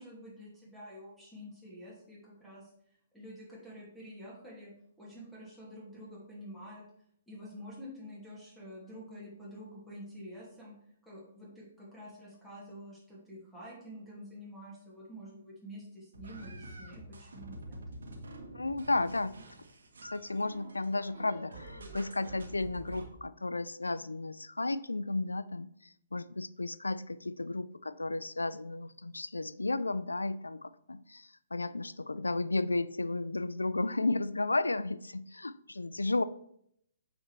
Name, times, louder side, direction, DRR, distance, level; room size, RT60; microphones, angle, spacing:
voice 1, 0.0-4.7 5.0-6.8 7.3-10.7 11.0-17.8, equal, 5° left, -7 dB, 2.5 m, -48 dB
sound 1, 16.1-23.1, right 1 dB, 70° right, 1.5 m, -47 dB
voice 2, 18.5-19.3 20.0-36.2, left 2 dB, 85° left, 16 dB, 0.4 m, -33 dB
8.4 x 5.2 x 3.3 m, 0.70 s
figure-of-eight pair, 130°, 0 cm